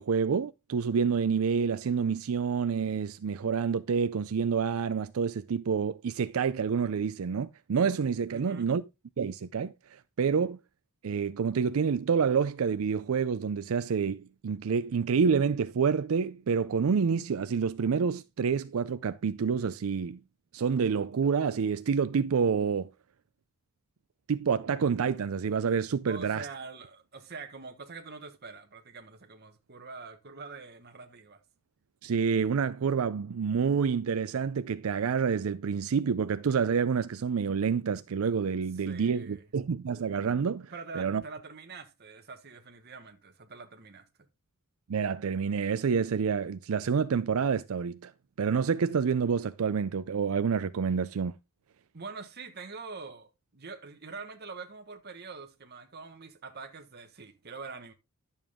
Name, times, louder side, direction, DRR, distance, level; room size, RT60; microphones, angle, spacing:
voice 1, 0.0-8.8 9.2-9.7 10.2-10.6 11.0-20.2 20.5-22.9 24.3-26.5 32.0-41.2 44.9-48.1 48.4-51.3, right 6 dB, 70° right, 0.4 m, -28 dB
voice 2, 8.3-8.7 26.1-31.4 38.8-39.5 40.7-44.0 51.9-57.9, right 4 dB, 50° right, 1.3 m, -44 dB
11.0 x 7.2 x 3.6 m
head